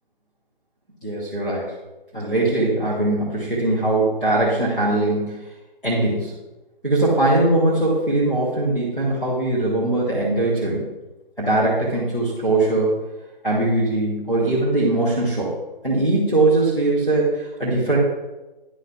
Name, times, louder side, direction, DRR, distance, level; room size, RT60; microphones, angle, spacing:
voice 1, 1.0-1.7 2.1-5.4 5.8-6.3 6.8-10.8 11.4-13.0 13.4-15.5 15.8-18.0, right 2 dB, ahead, -19 dB, 0.5 m, -21 dB
11.0 x 3.9 x 6.0 m, 1.1 s
figure-of-eight pair, 150°, 30 cm